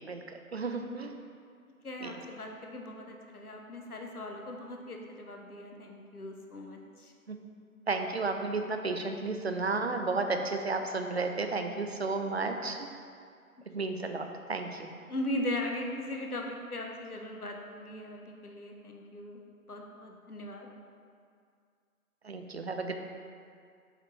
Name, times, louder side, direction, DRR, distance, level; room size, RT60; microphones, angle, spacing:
voice 1, 0.1-1.1 2.0-2.1 7.3-7.4 7.9-12.9 13.7-14.9 22.2-22.9, right 3 dB, 45° right, 5 dB, 0.5 m, -33 dB
voice 2, 1.8-7.1 15.1-19.4 19.7-20.7, left 1 dB, 80° left, 2 dB, 1.0 m, -39 dB
7.5 x 4.9 x 3.1 m, 2.2 s
figure-of-eight pair, 145°, 44 cm